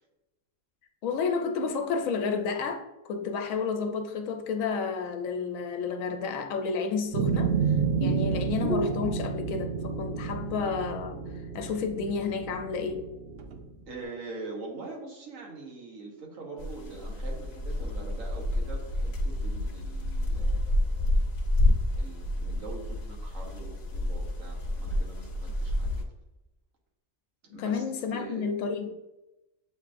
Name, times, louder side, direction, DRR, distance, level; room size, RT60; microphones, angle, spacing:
voice 1, 1.0-7.5 8.0-11.2 11.5-13.1 27.5-28.9, left 5 dB, 90° left, 5 dB, 1.0 m, -31 dB
sound 1, 7.1-13.7, right 5 dB, 65° right, 0.6 m, -30 dB
voice 2, 13.9-21.1 21.9-25.9 27.4-27.8 28.1-28.5, right 3 dB, 80° right, -1 dB, 1.5 m, -43 dB
sound 2, 16.6-26.0, left 1 dB, 55° left, 0.9 m, -29 dB
7.7 x 2.7 x 2.5 m, 0.97 s
omnidirectional pair, 1.4 m